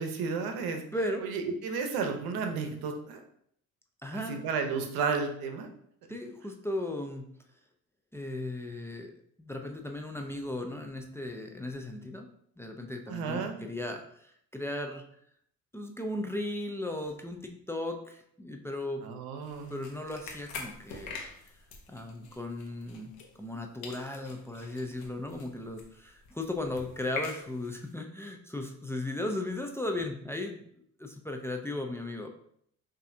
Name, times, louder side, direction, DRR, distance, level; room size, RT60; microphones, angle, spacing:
voice 1, 0.0-0.8 1.2-3.2 4.1-5.7 13.1-13.6 19.0-19.8, right 5 dB, 80° right, 5 dB, 0.8 m, -32 dB
voice 2, 0.9-1.2 4.0-4.4 6.1-7.3 8.1-9.1 9.4-12.3 12.6-15.0 15.7-19.0 19.7-21.2 21.9-30.7 31.0-32.3, left 1 dB, 5° left, 3 dB, 0.4 m, -36 dB
sound 1, 19.4-23.6 23.8-27.9, left 4 dB, 85° left, 0.9 m, -45 dB
5.6 x 2.7 x 2.7 m, 0.68 s
cardioid pair, 90°, 36 cm